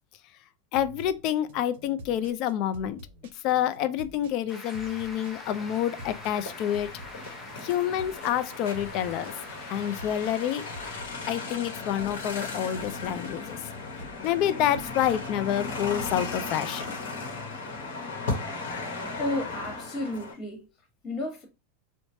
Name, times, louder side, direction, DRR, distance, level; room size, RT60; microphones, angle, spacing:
voice 1, 0.7-3.0 3.3-6.9 7.6-9.3 9.7-10.6 11.3-13.6 14.2-17.0, left 11 dB, 55° left, 0.4 m, -28 dB
sound 1, 0.7-16.7, right 2 dB, 75° right, 0.6 m, -47 dB
sound 2, 4.5-11.0, left 2 dB, 15° left, 0.8 m, -45 dB
sound 3, 5.4-20.3, left 3 dB, 80° left, 0.9 m, -37 dB
voice 2, 19.2-20.6 21.0-21.5, left 1 dB, 35° left, 1.3 m, -32 dB
3.1 x 2.1 x 2.6 m
hypercardioid pair, 110°, 0 cm